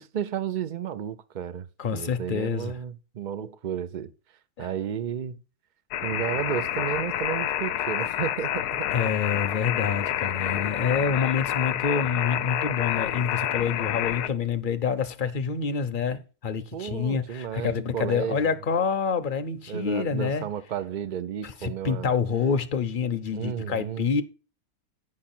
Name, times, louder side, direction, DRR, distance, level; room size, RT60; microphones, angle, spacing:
voice 1, 0.0-4.1 4.6-5.4 6.0-8.9 16.7-18.5 19.7-22.1 23.3-24.1, right 9 dB, 70° right, 0.4 m, -32 dB
voice 2, 1.8-2.7 4.6-4.7 8.9-20.5 21.4-24.2, left 6 dB, 45° left, 0.7 m, -27 dB
sound 1, 5.9-14.3, left 12 dB, 85° left, 1.2 m, -28 dB
9.6 x 5.9 x 4.3 m
omnidirectional pair, 1.6 m